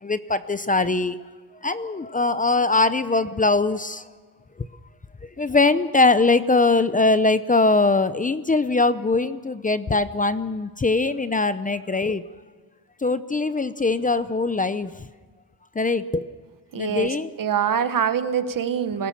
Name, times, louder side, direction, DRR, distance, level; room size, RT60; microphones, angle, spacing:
voice 1, 0.0-1.2 1.6-4.0 5.4-12.2 13.0-15.1 15.7-16.3 16.7-17.3, left 3 dB, 20° left, 13 dB, 0.7 m, -21 dB
voice 2, 16.7-19.1, right 8 dB, 60° right, 11 dB, 1.3 m, -24 dB
23.0 x 17.5 x 7.1 m, 1.4 s
wide cardioid pair, 120°, 38 cm